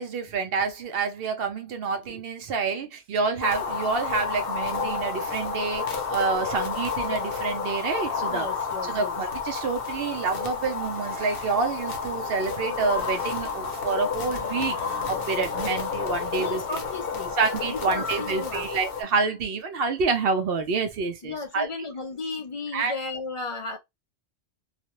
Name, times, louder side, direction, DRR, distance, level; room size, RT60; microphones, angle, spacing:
voice 1, 0.0-8.5 8.9-14.8 15.1-16.6 17.4-21.7 22.7-22.9, right 4 dB, 65° right, 0.7 m, -28 dB
sound 1, 3.4-19.0, left 5 dB, 60° left, 0.8 m, -30 dB
voice 2, 8.3-9.2 16.4-17.4 17.7-18.7 21.2-23.8, left 3 dB, 45° left, 0.4 m, -34 dB
2.4 x 2.1 x 2.9 m
omnidirectional pair, 1.2 m